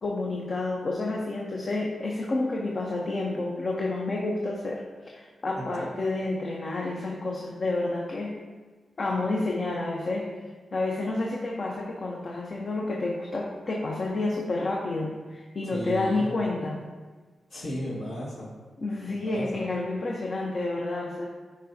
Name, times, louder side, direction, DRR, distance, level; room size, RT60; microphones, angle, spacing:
voice 1, 0.0-8.4 9.0-10.3 10.7-16.8 18.8-21.3, left 2 dB, 55° left, -1 dB, 0.9 m, -29 dB
voice 2, 15.6-16.3 17.5-18.5 19.1-19.7, equal, 80° left, -8 dB, 2.0 m, -35 dB
9.0 x 4.7 x 2.8 m, 1.4 s
supercardioid pair, 40°, 0 cm